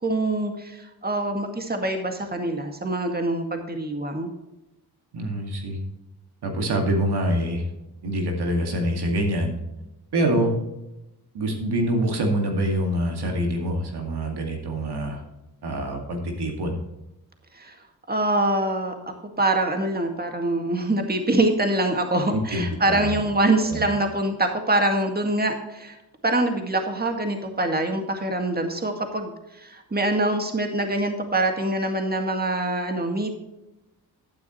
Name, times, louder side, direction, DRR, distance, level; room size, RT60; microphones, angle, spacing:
voice 1, 0.0-4.3 10.3-10.4 17.5-17.8 18.1-18.9 19.4-26.0 26.2-33.3, right 2 dB, 25° right, 4 dB, 2.0 m, -24 dB
voice 2, 5.1-5.8 6.4-7.7 8.0-9.6 10.1-10.6 11.3-15.2 15.6-16.8 22.3-23.2 23.6-23.9, right 1 dB, 75° right, 2 dB, 2.3 m, -25 dB
11.0 x 9.6 x 3.1 m, 0.94 s
cardioid pair, 55°, 40 cm